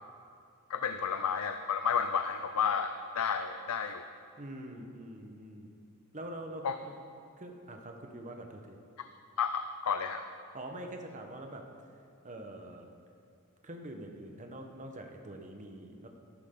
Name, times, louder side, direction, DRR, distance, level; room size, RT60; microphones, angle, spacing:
voice 1, 0.7-4.0 6.6-6.8 9.4-10.2, left 6 dB, 85° left, 8 dB, 0.5 m, -31 dB
voice 2, 4.4-5.8 6.1-6.9 7.4-8.8 10.5-11.7 12.2-12.9 13.6-16.1, right 1 dB, 35° right, 3 dB, 1.1 m, -44 dB
13.5 x 12.0 x 3.8 m, 2.4 s
head